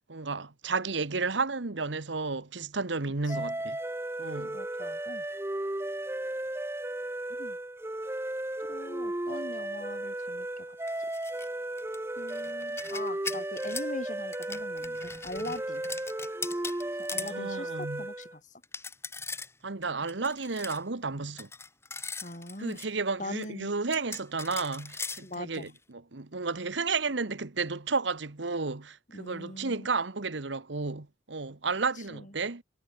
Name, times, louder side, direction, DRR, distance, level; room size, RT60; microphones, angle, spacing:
voice 1, 0.1-3.8 4.2-4.6 17.1-18.1 19.6-21.5 22.6-32.6, right 4 dB, 80° right, 1.3 m, -32 dB
sound 1, 3.3-18.4, right 1 dB, 15° right, 0.7 m, -35 dB
voice 2, 4.5-5.2 7.4-7.6 8.6-10.8 12.2-15.8 16.9-18.6 22.2-22.8 23.2-23.7 25.2-25.7 29.1-29.9 32.0-32.3, left 1 dB, 40° left, 7.0 m, -41 dB
sound 2, 10.8-11.5 11.8-13.9 14.3-17.4 17.8-17.9 18.2-18.3 18.6-19.5 19.8-20.8 21.4-22.9 23.4-23.5 23.9-25.8, left 4 dB, 15° left, 6.2 m, -40 dB
head